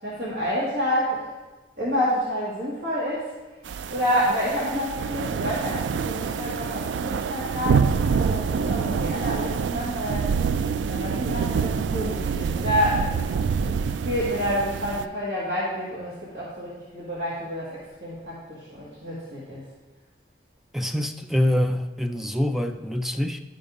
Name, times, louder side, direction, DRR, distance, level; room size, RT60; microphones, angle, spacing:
voice 1, 0.0-1.2 1.8-3.3 3.9-10.3 10.9-13.3 13.6-19.6, equal, 60° right, -9 dB, 1.9 m, -28 dB
sound 1, 3.7-15.0, right 6 dB, 85° right, 0.3 m, -26 dB
voice 2, 20.7-23.4, left 1 dB, ahead, 6 dB, 0.3 m, -25 dB
11.0 x 5.3 x 3.7 m, 1.2 s
head